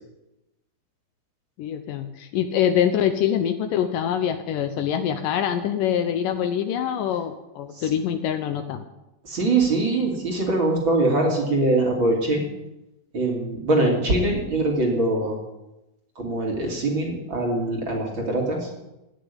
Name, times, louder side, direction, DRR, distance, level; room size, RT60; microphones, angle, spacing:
voice 1, 1.6-8.8, left 9 dB, 75° left, 9 dB, 2.2 m, -24 dB
voice 2, 9.2-12.4 13.1-15.4 16.2-18.7, right 2 dB, 35° right, 0 dB, 3.2 m, -23 dB
16.5 x 6.8 x 9.9 m, 0.93 s
omnidirectional pair, 4.3 m